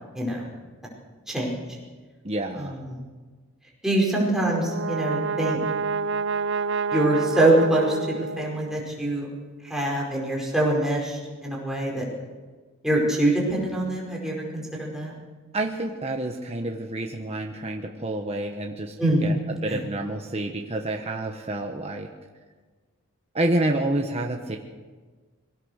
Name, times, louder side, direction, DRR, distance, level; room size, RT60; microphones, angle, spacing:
voice 1, 0.1-0.5 1.3-1.6 2.6-3.0 3.8-5.6 6.9-9.3 9.6-12.0 12.8-15.1 19.0-19.3 19.7-19.8, right 1 dB, ahead, -3 dB, 5.0 m, -24 dB
voice 2, 2.2-2.8 15.5-18.9 19.2-22.1 23.3-24.6, right 1 dB, 30° right, 2 dB, 1.3 m, -28 dB
Brass instrument, 4.4-8.8, right 5 dB, 60° right, 0.5 m, -28 dB
23.0 x 17.5 x 6.6 m, 1.4 s
head